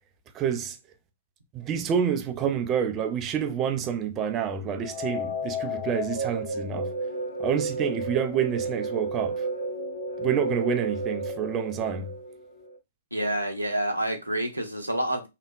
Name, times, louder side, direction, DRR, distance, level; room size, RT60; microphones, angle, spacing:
voice 1, 0.3-0.8 1.5-6.9 7.4-9.5 10.2-12.1, right 8 dB, 25° right, 0.4 m, -28 dB
sound 1, 4.8-12.8, right 1 dB, 70° left, 0.7 m, -32 dB
voice 2, 13.1-15.3, right 1 dB, 85° right, 0.6 m, -28 dB
2.9 x 2.1 x 2.4 m
figure-of-eight pair, 115°, 0 cm